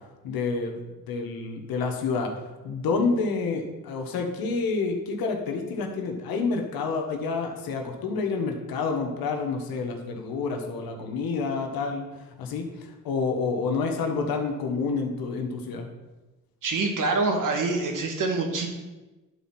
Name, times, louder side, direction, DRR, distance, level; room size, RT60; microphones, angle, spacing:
voice 1, 0.2-0.8 1.1-2.3 2.6-12.1 12.4-12.7 13.0-15.9, left 4 dB, 85° left, 3 dB, 1.4 m, -28 dB
voice 2, 16.6-18.7, right 3 dB, 60° right, 3 dB, 1.9 m, -25 dB
11.0 x 4.2 x 5.9 m, 1.1 s
cardioid pair, 75°, 35 cm